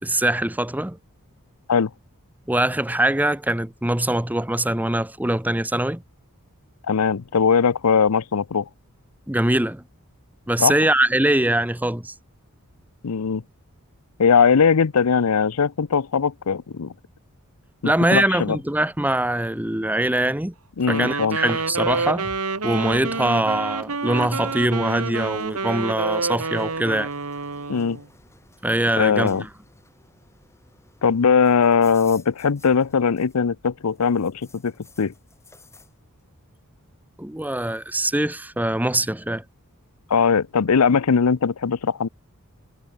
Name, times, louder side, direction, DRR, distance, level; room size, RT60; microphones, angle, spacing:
voice 1, 0.0-1.0 2.5-6.0 9.3-9.8 10.5-12.1 17.8-20.5 20.9-22.3 22.6-27.1 28.6-29.5 37.2-39.4, right 1 dB, 5° right, 1.0 m, -22 dB
voice 2, 6.9-8.7 10.6-10.7 13.0-13.4 14.2-16.9 17.8-18.6 20.8-21.4 27.7-28.0 29.0-29.4 31.0-34.7 35.0-35.1 40.1-42.1, left 6 dB, 80° left, 0.6 m, -20 dB
Wind instrument woodwind instrument, 20.8-28.0, right 4 dB, 85° right, 2.6 m, -28 dB
sound 1, 23.9-33.6 33.9-35.9, left 3 dB, 10° left, 6.7 m, -54 dB
head